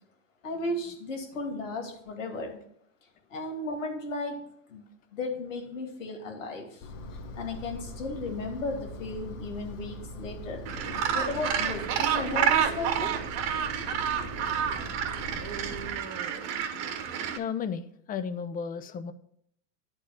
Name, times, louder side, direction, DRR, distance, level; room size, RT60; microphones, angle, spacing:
voice 1, 0.4-2.6 3.3-4.4 4.7-4.8 5.1-6.9 7.3-10.6 11.1-13.1, left 2 dB, 90° left, 3 dB, 2.7 m, -35 dB
Engine, 6.8-15.9, left 1 dB, 45° left, 1.1 m, -42 dB
Gull seagull, 10.7-17.4, right 8 dB, 45° right, 1.1 m, -29 dB
voice 2, 17.3-19.1, left 6 dB, 25° left, 11 dB, 0.5 m, -34 dB
10.5 x 4.4 x 5.9 m, 0.70 s
supercardioid pair, 125°, 37 cm